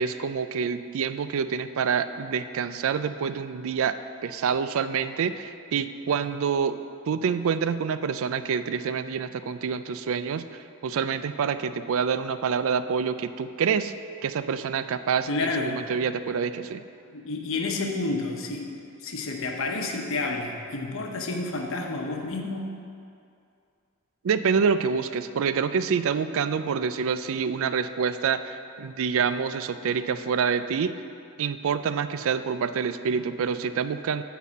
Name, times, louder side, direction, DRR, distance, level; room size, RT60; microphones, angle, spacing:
voice 1, 0.0-6.8 7.1-13.9 14.2-16.8 24.2-31.0 31.4-34.2, right 6 dB, 70° right, 12 dB, 0.4 m, -27 dB
voice 2, 15.3-15.8 17.1-22.7, left 3 dB, 65° left, 2 dB, 1.0 m, -30 dB
9.5 x 4.1 x 7.2 m, 2.4 s
head